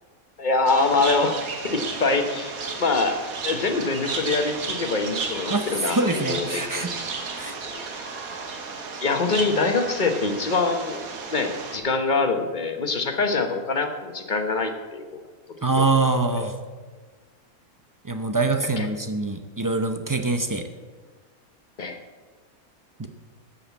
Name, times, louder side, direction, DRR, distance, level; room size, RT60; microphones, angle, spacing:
voice 1, 0.4-1.4 1.6-3.2 3.4-7.0 7.6-7.8 9.0-11.0 11.3-15.2 15.8-15.9 16.3-16.5 18.8-18.9 21.8-22.0, left 3 dB, 35° left, 6 dB, 1.1 m, -24 dB
sound 1, 0.7-11.8, right 4 dB, 70° right, 1.7 m, -33 dB
voice 2, 5.5-6.9 7.3-7.6 15.6-16.5 18.0-20.7 23.0-23.1, right 3 dB, 30° right, 7 dB, 0.3 m, -24 dB
13.0 x 5.6 x 8.3 m, 1.4 s
omnidirectional pair, 1.5 m